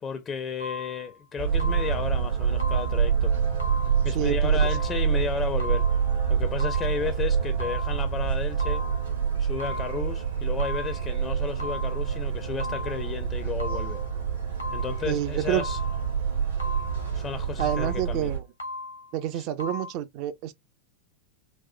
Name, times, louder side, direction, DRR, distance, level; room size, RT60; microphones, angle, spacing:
voice 1, 0.0-3.3 4.0-5.9 6.3-8.8 9.4-14.0 14.7-15.8 17.1-18.3 19.3-19.4, left 6 dB, 25° left, 0.4 m, -33 dB
sound 1, 0.6-1.2 1.6-2.2 2.6-3.2 3.6-4.2 4.6-5.2 5.6-6.2 6.6-7.2 7.6-8.2 8.6-9.2 9.6-10.2 10.6-11.2 11.6-12.2 12.6-13.2 13.6-14.2 14.6-15.2 15.6-16.2 16.6-17.2 17.6-18.2 18.6-19.2 19.6-19.9, left 2 dB, 75° left, 0.7 m, -37 dB
sound 2, 1.4-18.4, right 7 dB, 70° right, 1.2 m, -27 dB
voice 2, 4.1-4.6 15.0-15.7 17.6-18.5 19.1-20.5, right 12 dB, 45° right, 0.4 m, -28 dB
4.2 x 2.1 x 2.5 m
figure-of-eight pair, 90°, 0 cm